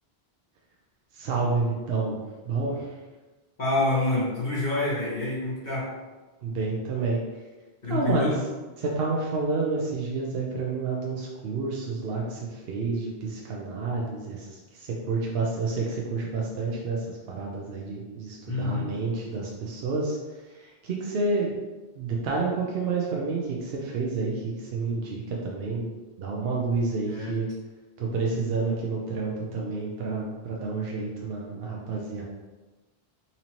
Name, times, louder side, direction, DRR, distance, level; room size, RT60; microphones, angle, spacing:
voice 1, 1.1-2.2 2.4-3.0 6.4-7.2 7.9-8.3 8.8-20.2 20.4-21.5 22.0-27.5 28.0-32.2, right 3 dB, 70° right, -2 dB, 0.8 m, -29 dB
voice 2, 3.6-5.9 7.8-8.4 18.5-18.9 27.0-27.4, left 2 dB, 45° left, -8 dB, 1.4 m, -27 dB
4.2 x 2.7 x 2.9 m, 1.2 s
omnidirectional pair, 1.0 m